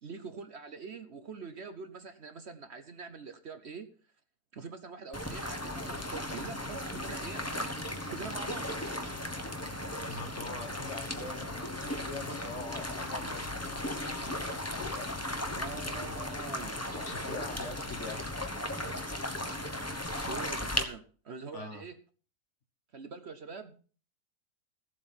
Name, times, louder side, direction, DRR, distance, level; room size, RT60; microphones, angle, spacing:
voice 1, 0.0-3.9 4.5-8.7 15.5-16.8 17.5-17.7 20.1-22.0 22.9-23.8, right 5 dB, 50° right, 10 dB, 1.1 m, -44 dB
sound 1, 5.1-20.8, left 1 dB, 10° left, 1.1 m, -36 dB
voice 2, 10.0-14.8 17.0-18.2 21.5-21.8, left 3 dB, 50° left, 9 dB, 1.5 m, -44 dB
sound 2, 11.4-16.6, left 10 dB, 85° left, 1.3 m, -51 dB
15.5 x 7.9 x 5.7 m, 0.40 s
omnidirectional pair, 1.6 m